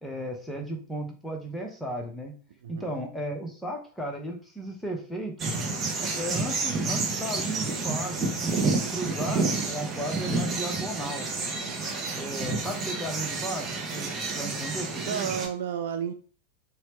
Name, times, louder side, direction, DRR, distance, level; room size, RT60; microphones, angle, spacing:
voice 1, 0.0-2.3 2.7-5.4 6.2-11.3 12.1-15.3, right 1 dB, 5° left, 1 dB, 0.8 m, -35 dB
voice 2, 2.6-3.0 11.7-11.8 12.1-12.2 15.0-16.1, right 8 dB, 55° right, 7 dB, 0.4 m, -32 dB
sound 1, 5.4-15.5, right 3 dB, 20° right, 0.7 m, -30 dB
4.2 x 2.1 x 3.0 m, 0.39 s
figure-of-eight pair, 90°, 0 cm